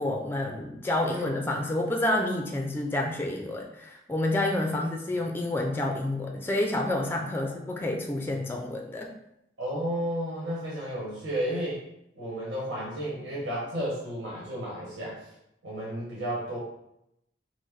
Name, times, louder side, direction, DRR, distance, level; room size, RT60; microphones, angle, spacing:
voice 1, 0.0-9.1, left 1 dB, 10° left, 1 dB, 0.4 m, -29 dB
voice 2, 9.6-11.8 12.1-15.2 15.6-16.6, equal, 85° right, -7 dB, 1.4 m, -32 dB
4.4 x 2.1 x 4.5 m, 0.80 s
head